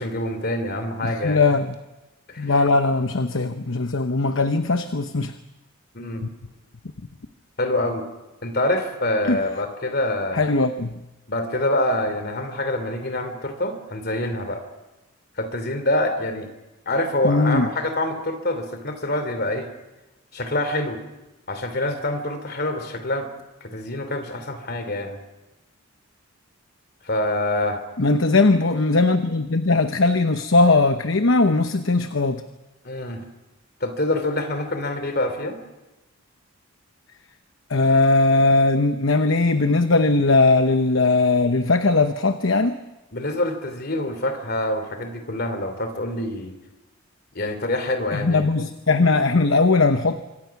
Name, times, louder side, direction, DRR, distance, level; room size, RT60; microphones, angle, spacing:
voice 1, 0.0-1.4 2.3-2.5 5.9-6.3 7.6-8.0 8.4-10.4 11.3-14.6 15.4-16.5 16.9-19.7 20.3-21.0 21.5-23.3 23.6-25.2 27.0-27.8 32.8-33.2 33.8-35.6 43.1-46.6 47.3-48.5, left 1 dB, 45° left, 8 dB, 3.0 m, -26 dB
voice 2, 1.0-1.7 2.4-5.3 9.3-9.4 10.3-11.0 17.2-17.7 28.0-32.4 37.7-42.8 48.1-50.2, left 3 dB, 60° left, 9 dB, 0.9 m, -19 dB
25.5 x 24.0 x 5.9 m, 1.1 s
head